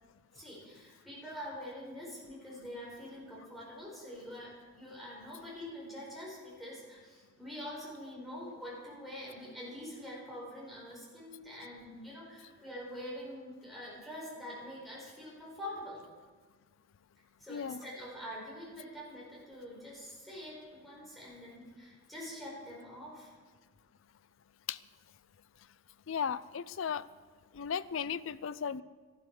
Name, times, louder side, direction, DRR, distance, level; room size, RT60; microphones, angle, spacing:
voice 1, 0.3-16.0 17.4-23.3, equal, ahead, -6 dB, 4.7 m, -45 dB
voice 2, 17.5-17.8 24.7-24.8 26.1-27.0 27.5-28.8, left 7 dB, 65° left, 17 dB, 0.4 m, -35 dB
13.0 x 12.0 x 4.9 m, 1.5 s
head